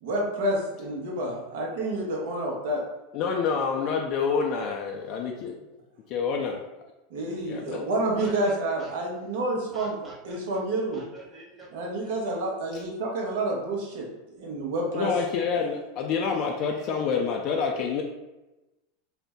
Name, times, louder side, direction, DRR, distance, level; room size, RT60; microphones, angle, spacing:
voice 1, 0.0-2.8 7.1-9.9 10.2-11.0 11.7-15.1, right 1 dB, 70° right, -1 dB, 0.8 m, -29 dB
voice 2, 3.1-5.5 6.1-6.6 7.5-7.8 14.9-18.0, left 5 dB, 55° left, 1 dB, 0.4 m, -27 dB
voice 3, 8.1-8.9 9.5-10.6 10.9-12.2 16.6-17.4, right 2 dB, 20° right, -4 dB, 1.1 m, -47 dB
2.5 x 2.1 x 3.5 m, 1.0 s
hypercardioid pair, 100°, 0 cm